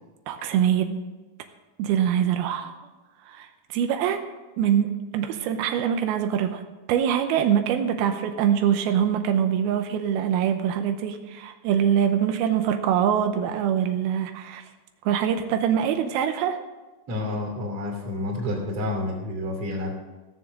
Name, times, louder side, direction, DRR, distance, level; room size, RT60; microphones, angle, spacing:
voice 1, 0.3-1.0 1.8-2.7 3.3-4.2 4.6-6.6 6.9-14.6 15.1-16.6, right 9 dB, 90° right, 6 dB, 2.7 m, -24 dB
voice 2, 17.1-19.9, left 2 dB, 40° right, -1 dB, 3.5 m, -29 dB
16.5 x 7.1 x 6.5 m, 1.2 s
omnidirectional pair, 4.3 m